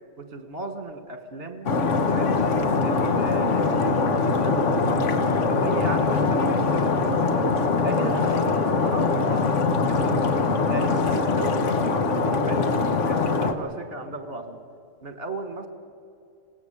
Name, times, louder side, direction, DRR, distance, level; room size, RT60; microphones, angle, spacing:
voice 1, 0.2-2.3 2.8-7.5 7.8-9.6 10.0-10.3 10.7-12.7 13.1-14.6 15.0-15.7, right 3 dB, 55° right, 6 dB, 2.1 m, -35 dB
Stream, 1.7-13.5, left 4 dB, 75° left, 1.6 m, -22 dB
26.5 x 18.0 x 8.3 m, 2.4 s
omnidirectional pair, 1.3 m